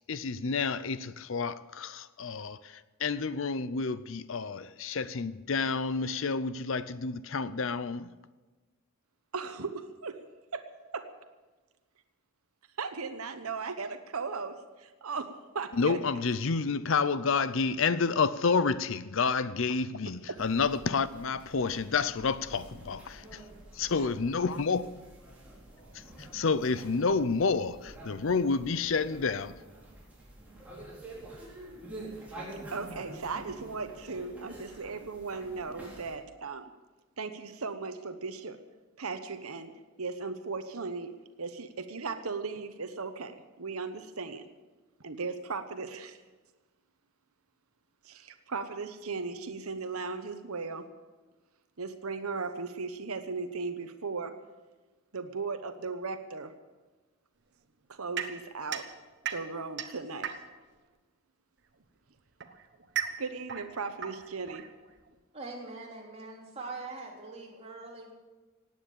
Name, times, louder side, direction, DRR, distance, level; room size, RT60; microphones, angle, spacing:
voice 1, 0.1-8.1 15.7-23.4 23.8-24.9 25.9-29.6, left 4 dB, 60° left, 0.6 m, -29 dB
voice 2, 9.3-10.2 10.5-10.7 10.9-11.1 12.8-16.2 20.3-20.4 32.3-32.5 32.7-36.7 37.2-38.6 39.0-39.7 40.0-41.1 41.4-44.4 45.0-46.2 48.0-50.9 51.8-54.3 55.1-56.5 57.9-58.9 59.3-60.3 63.2-64.7, right 4 dB, 80° right, 1.0 m, -37 dB
sound 1, 20.4-36.1, right 2 dB, 5° right, 4.1 m, -48 dB
sound 2, 58.2-60.8 61.8-65.2, right 8 dB, 50° right, 1.2 m, -38 dB
voice 3, 65.3-68.1, right 3 dB, 30° right, 3.3 m, -42 dB
17.5 x 9.3 x 8.5 m
head